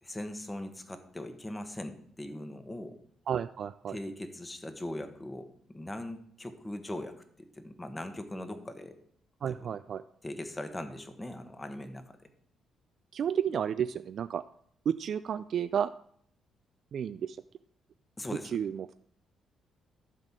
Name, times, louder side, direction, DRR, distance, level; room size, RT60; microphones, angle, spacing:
voice 1, 0.0-3.0 3.9-9.0 9.5-9.7 10.2-12.1 18.2-18.6, left 1 dB, 15° left, 7 dB, 1.3 m, -40 dB
voice 2, 3.3-4.0 9.4-10.0 13.1-14.4 14.9-15.9 16.9-17.4 18.5-18.9, right 8 dB, 60° right, 12 dB, 0.3 m, -31 dB
12.0 x 4.2 x 7.4 m, 0.64 s
cardioid pair, 90°, 0 cm